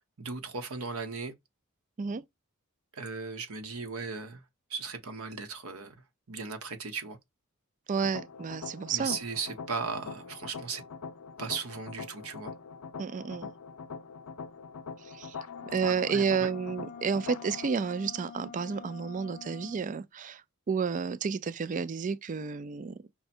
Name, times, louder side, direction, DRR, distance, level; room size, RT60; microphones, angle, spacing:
voice 1, 0.2-1.3 2.9-4.4 4.7-6.0 6.3-7.2 8.9-10.8 11.4-12.5 15.9-16.5, right 4 dB, 75° right, 1.1 m, -37 dB
voice 2, 7.9-9.2 13.0-13.5 15.1-15.4 15.6-20.4 20.7-23.0, right 6 dB, 35° right, 0.4 m, -31 dB
sound 1, 8.0-17.7, left 5 dB, 90° left, 0.6 m, -43 dB
sound 2, 15.4-19.9, left 7 dB, 40° left, 0.5 m, -46 dB
5.6 x 2.2 x 4.3 m
head